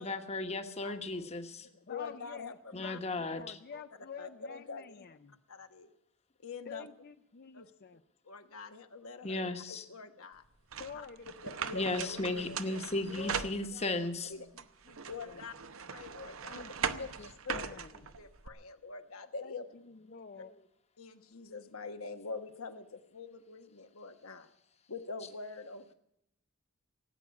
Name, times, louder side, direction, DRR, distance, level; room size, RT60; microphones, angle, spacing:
voice 1, 0.0-1.7 2.7-3.6 9.2-9.8 11.7-14.3, left 2 dB, 30° left, 7 dB, 1.2 m, -35 dB
voice 2, 0.8-1.3 1.9-3.0 3.4-3.5 3.7-3.8 4.2-5.0 5.5-5.9 6.4-6.9 7.5-7.7 8.2-10.4 10.9-11.0 11.4-12.8 13.2-13.3 13.9-14.0 14.3-14.5 15.1-15.5 15.9-16.6 17.0-17.1 17.4-17.8 18.2-19.6 20.4-20.5 21.0-24.5 24.9-25.9, left 4 dB, 80° left, 7 dB, 1.2 m, -45 dB
voice 3, 1.7-5.4 6.7-8.0 10.8-11.6 13.1-14.1 14.9-15.4 16.5-17.9 19.4-20.5, left 6 dB, 50° left, 8 dB, 0.6 m, -49 dB
sound 1, 10.7-14.1 14.6-18.5, right 6 dB, 70° right, 0.8 m, -40 dB
17.5 x 8.6 x 9.5 m, 0.80 s
head